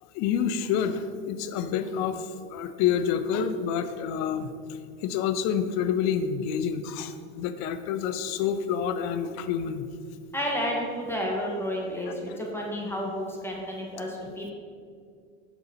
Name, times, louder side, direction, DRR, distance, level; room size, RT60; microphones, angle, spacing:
voice 1, 0.0-9.9 12.3-12.4, left 8 dB, 50° left, 10 dB, 0.6 m, -28 dB
voice 2, 10.3-14.5, equal, 5° left, -2 dB, 1.2 m, -31 dB
7.0 x 4.0 x 5.6 m, 2.2 s
supercardioid pair, 110°, 35 cm